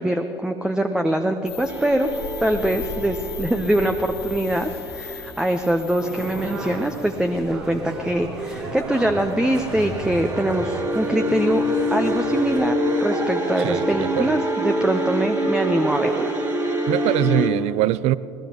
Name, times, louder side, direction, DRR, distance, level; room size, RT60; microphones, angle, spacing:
voice 1, 0.0-2.1 2.4-11.6 11.9-16.3, right 1 dB, 5° right, 0.8 m, -23 dB
sound 1, 1.5-7.2, left 7 dB, 80° left, 2.7 m, -37 dB
sound 2, 1.7-5.7 8.8-17.5, equal, 30° right, 3.0 m, -26 dB
sound 3, 6.0-12.6, right 1 dB, 85° right, 4.4 m, -34 dB
voice 2, 13.6-14.4 16.9-18.2, right 15 dB, 50° right, 0.4 m, -22 dB
21.0 x 20.5 x 3.0 m
figure-of-eight pair, 65°, 14 cm